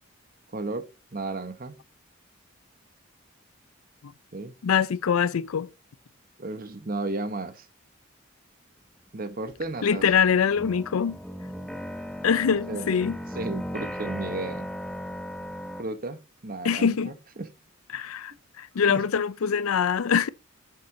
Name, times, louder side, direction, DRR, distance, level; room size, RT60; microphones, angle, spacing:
voice 1, 0.5-1.8 4.3-4.6 6.4-7.7 9.1-10.4 12.7-13.0 13.3-14.7 15.8-17.5 18.9-19.0, right 2 dB, 40° right, 1.0 m, -34 dB
voice 2, 4.6-5.7 9.8-11.2 12.2-13.1 16.6-17.1 17.9-20.3, left 7 dB, 85° left, 0.5 m, -24 dB
sound 1, 9.5-9.6 10.0-15.8, equal, ahead, 0.8 m, -36 dB
7.5 x 7.5 x 2.7 m
head